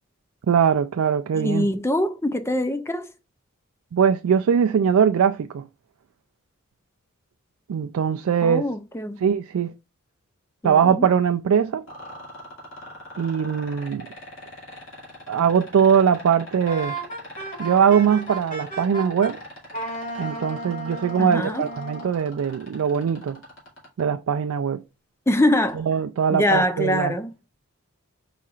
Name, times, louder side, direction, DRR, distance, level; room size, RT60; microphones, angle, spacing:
voice 1, 0.5-1.7 3.9-5.6 7.7-8.6 9.2-9.7 10.6-11.8 13.2-14.1 15.3-17.0 17.6-19.4 20.2-23.4 24.0-24.8 25.8-27.1, right 7 dB, 75° right, 0.3 m, -21 dB
voice 2, 1.3-3.1 8.4-9.2 10.6-11.1 21.2-21.6 25.3-25.8 26.3-27.3, left 1 dB, 10° left, 0.4 m, -23 dB
sound 1, 11.9-24.0 25.7-25.8, left 1 dB, 60° left, 2.5 m, -41 dB
Wind instrument woodwind instrument, 16.7-19.3 19.7-22.1, right 2 dB, 40° left, 2.8 m, -34 dB
4.9 x 4.2 x 2.4 m
head